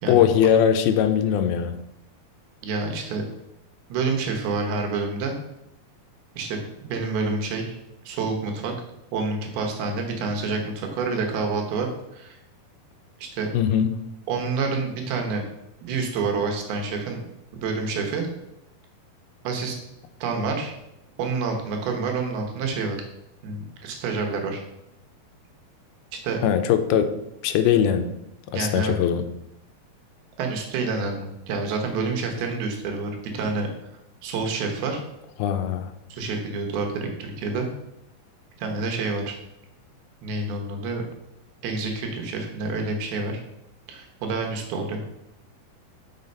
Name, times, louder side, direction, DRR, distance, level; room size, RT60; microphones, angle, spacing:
voice 1, 0.1-1.8 13.5-14.0 26.4-27.1 27.4-28.1 28.5-29.3 35.4-35.9, left 9 dB, 85° left, 8 dB, 2.5 m, -21 dB
voice 2, 2.6-3.2 3.9-5.4 6.4-7.8 8.0-8.7 9.1-12.4 13.2-13.5 14.3-15.4 15.8-17.2 17.5-18.3 19.4-19.8 20.2-20.7 21.2-23.0 23.4-24.6 26.2-26.4 28.5-29.0 30.4-33.7 34.2-35.0 36.1-37.7 38.6-39.3 40.2-41.0 41.6-43.4 43.9-45.0, right 4 dB, 80° right, 2 dB, 3.1 m, -28 dB
5.8 x 5.7 x 5.3 m, 0.84 s
omnidirectional pair, 4.4 m